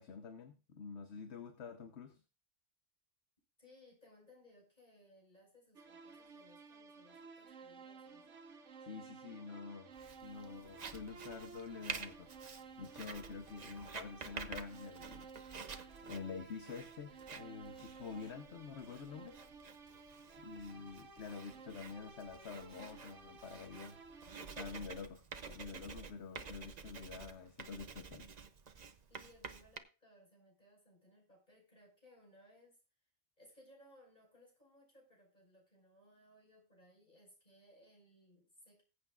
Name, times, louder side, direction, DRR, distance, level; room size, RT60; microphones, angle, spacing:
voice 1, 0.0-2.2 8.8-9.9 10.2-15.3 16.1-19.4 20.4-24.0 24.4-28.3, left 5 dB, 65° left, 7 dB, 1.2 m, -48 dB
voice 2, 3.6-8.3 29.1-33.1 33.4-38.8, left 1 dB, 40° left, 0 dB, 5.6 m, -64 dB
sound 1, 5.8-24.7, right 5 dB, 85° right, 1.5 m, -55 dB
Writing, 10.0-29.8, right 5 dB, 40° right, 0.7 m, -50 dB
20.0 x 8.4 x 2.4 m, 0.32 s
omnidirectional pair, 1.2 m